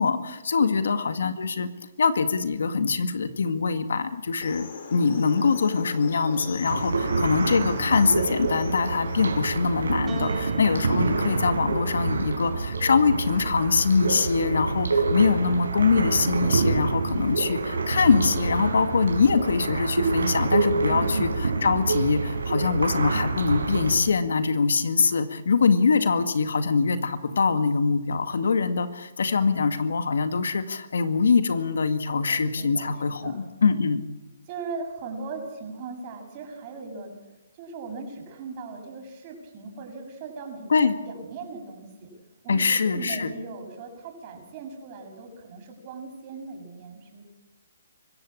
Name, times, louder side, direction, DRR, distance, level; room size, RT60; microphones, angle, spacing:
voice 1, 0.0-1.7 2.0-34.0 40.7-40.9 42.5-43.3, left 5 dB, 75° left, 10 dB, 1.9 m, -23 dB
sound 1, 4.4-10.0, left 4 dB, 60° left, 4.4 m, -39 dB
sound 2, 6.6-24.0, right 4 dB, 90° right, 5.2 m, -27 dB
Piano, 10.1-14.6 15.6-16.3, right 7 dB, 15° right, 5.6 m, -45 dB
voice 2, 20.9-21.2 32.1-33.4 34.5-37.1 37.5-40.7 41.0-42.1 42.4-47.2, right 4 dB, 35° right, 3 dB, 6.9 m, -39 dB
24.5 x 15.0 x 8.8 m, 1.0 s
hypercardioid pair, 145°, 0 cm